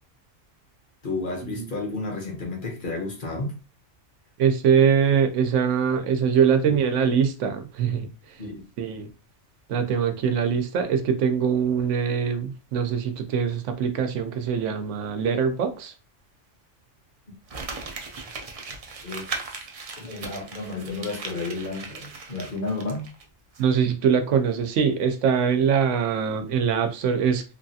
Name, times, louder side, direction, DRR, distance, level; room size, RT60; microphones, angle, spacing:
voice 1, 1.0-3.5 8.4-8.7 19.0-19.3 19.9-23.1, left 3 dB, 50° left, 0.9 m, -32 dB
voice 2, 4.4-8.1 8.8-9.1 9.7-15.9 23.6-27.4, right 7 dB, 85° right, 0.9 m, -23 dB
Crumpling crinkling, 17.5-23.2 23.5-23.6, right 4 dB, 55° right, 0.4 m, -38 dB
3.0 x 2.3 x 2.6 m
omnidirectional pair, 1.2 m